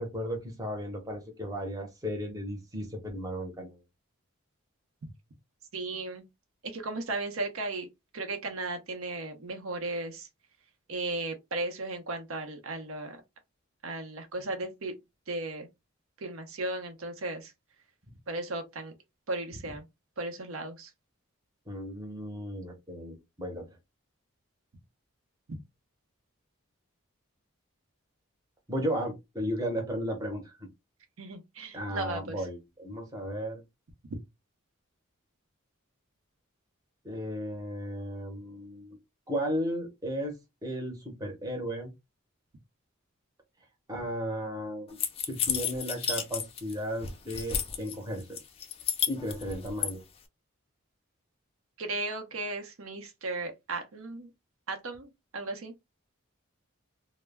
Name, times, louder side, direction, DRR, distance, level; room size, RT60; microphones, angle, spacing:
voice 1, 0.0-3.7 21.7-23.6 28.7-30.5 31.7-33.6 37.0-39.0 39.3-41.9 43.9-45.0 45.3-48.4 49.1-50.0, equal, 15° right, 0.7 m, -35 dB
voice 2, 5.7-6.2 6.6-7.9 8.1-10.3 10.9-13.2 13.8-14.9 15.3-15.7 16.2-17.5 18.3-18.9 19.3-19.8 20.2-20.9 25.5-25.6 31.2-32.5 51.8-54.3 54.7-55.7, right 2 dB, 85° right, 0.7 m, -36 dB
sound 1, 45.0-46.7 47.0-47.9 48.4-49.9, left 8 dB, 25° left, 0.3 m, -31 dB
2.2 x 2.0 x 3.3 m
head